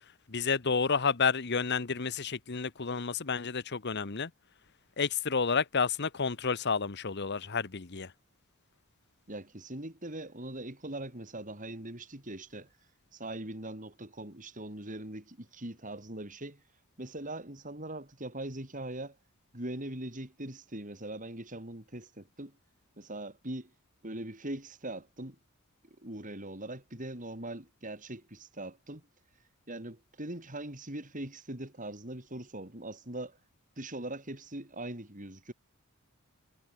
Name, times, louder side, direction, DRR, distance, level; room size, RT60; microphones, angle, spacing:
voice 1, 0.3-4.3 5.0-8.1, left 5 dB, 50° left, 1.0 m, -30 dB
voice 2, 9.3-12.7 13.1-16.6 17.0-19.2 19.5-22.5 23.0-23.7 24.0-25.4 26.0-29.0 29.7-33.4 33.8-35.5, right 1 dB, 35° right, 5.1 m, -41 dB
head